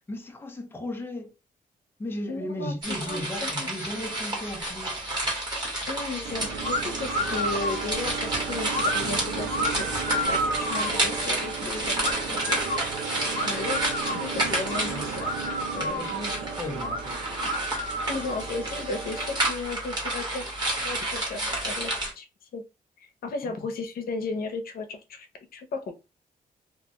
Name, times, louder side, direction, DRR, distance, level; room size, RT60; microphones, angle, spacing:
voice 1, 0.1-1.3 2.0-5.1 14.9-15.1 15.8-17.3 23.4-23.7, left 1 dB, 15° left, 0.5 m, -36 dB
voice 2, 2.3-3.7 5.9-9.9 10.3-12.6 13.4-15.3 15.7-16.0 18.1-20.5 20.8-22.2 22.5-22.6 23.0-25.3 25.5-25.9, left 3 dB, 75° left, 0.6 m, -35 dB
sound 1, 2.8-22.1, right 1 dB, 30° right, 1.3 m, -31 dB
sound 2, 6.2-19.6, right 6 dB, 85° right, 0.5 m, -36 dB
sound 3, 6.6-6.8 7.1-7.8 8.7-9.0 9.5-11.0 12.0-12.8 13.3-14.3 14.7-14.8 15.2-16.2 16.8-17.0 17.4-18.5, equal, 45° left, 0.9 m, -30 dB
2.5 x 2.2 x 2.9 m
cardioid pair, 120°, 15 cm